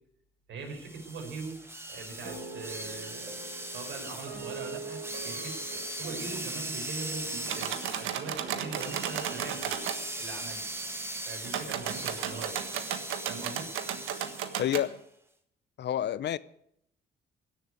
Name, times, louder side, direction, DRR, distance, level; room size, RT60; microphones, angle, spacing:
voice 1, 0.5-9.8 10.2-10.7 11.3-12.7 13.3-13.7, right 4 dB, 70° right, 5.2 m, -42 dB
sound 1, 0.7-14.7, right 1 dB, 10° right, 2.1 m, -39 dB
sound 2, 2.2-11.4, right 3 dB, 50° right, 2.5 m, -45 dB
sound 3, 7.5-10.0 11.5-14.9, right 9 dB, 90° right, 1.4 m, -34 dB
voice 2, 14.6-15.0 15.8-16.4, left 11 dB, 60° left, 0.7 m, -28 dB
16.5 x 7.3 x 9.4 m
cardioid pair, 90°, 20 cm